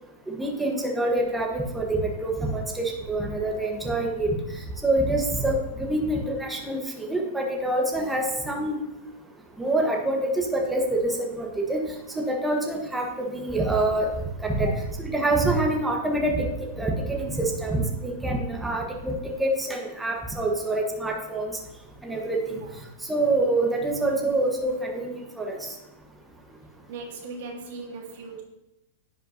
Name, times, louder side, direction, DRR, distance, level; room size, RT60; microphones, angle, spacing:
voice 1, 0.3-4.3 4.8-8.8 9.6-11.8 12.3-14.1 14.4-14.7 15.1-16.5 16.8-19.1 19.4-21.5 22.0-22.6 23.1-25.6, right 2 dB, 10° right, 0 dB, 1.2 m, -26 dB
voice 2, 26.9-28.4, right 3 dB, 65° right, 2 dB, 1.6 m, -38 dB
10.0 x 5.5 x 2.8 m, 0.93 s
hypercardioid pair, 130°, 0 cm